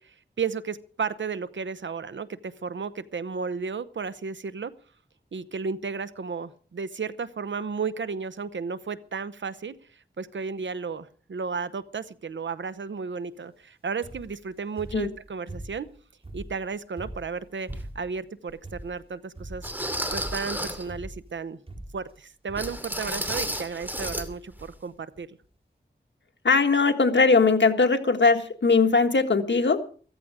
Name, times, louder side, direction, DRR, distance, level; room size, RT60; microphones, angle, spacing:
voice 1, 0.0-4.7 5.3-9.8 10.2-15.9 16.3-17.7 17.9-19.7 20.1-21.6 21.9-25.4, right 5 dB, 85° right, 14 dB, 0.9 m, -33 dB
sound 1, 14.0-14.4 14.8-15.9 16.2-18.2 18.6-19.1 19.4-19.8 20.1-20.6 20.9-21.4 21.7-22.1 22.5-22.8 23.3-23.8 24.0-24.4 25.1-25.2 25.4-25.5, right 1 dB, 30° right, 4.6 m, -41 dB
sound 2, 17.7-17.8 18.5-18.6 19.6-20.9 22.6-24.3 24.5-24.7 25.2-25.3, equal, 10° right, 2.6 m, -32 dB
voice 2, 26.4-29.8, left 4 dB, 75° left, 6 dB, 1.6 m, -20 dB
14.5 x 14.5 x 4.9 m, 0.42 s
wide cardioid pair, 65°, 19 cm